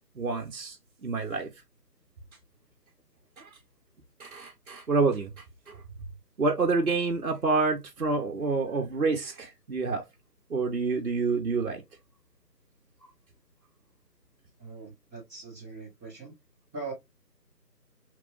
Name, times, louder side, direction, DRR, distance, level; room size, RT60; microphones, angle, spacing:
voice 1, 0.2-0.8 1.0-1.5 3.4-3.5 4.2-5.3 6.4-10.0 10.5-11.8, right 4 dB, 60° right, 0.8 m, -27 dB
voice 2, 14.6-16.3 16.7-16.9, right 3 dB, 10° left, 1.4 m, -41 dB
3.4 x 3.0 x 2.4 m
figure-of-eight pair, 165°, 49 cm